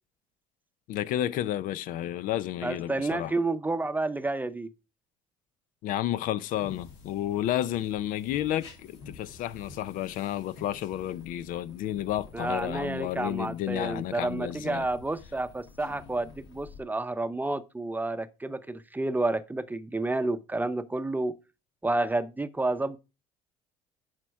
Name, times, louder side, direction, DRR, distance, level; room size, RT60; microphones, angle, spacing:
voice 1, 0.9-3.3 5.8-14.9, left 12 dB, 65° left, 0.6 m, -31 dB
voice 2, 2.6-4.7 12.3-21.3 21.8-23.0, right 2 dB, 10° right, 0.7 m, -30 dB
sound 1, 6.5-16.8, left 4 dB, 90° left, 2.4 m, -50 dB
10.5 x 4.4 x 4.6 m
supercardioid pair, 75°, 15 cm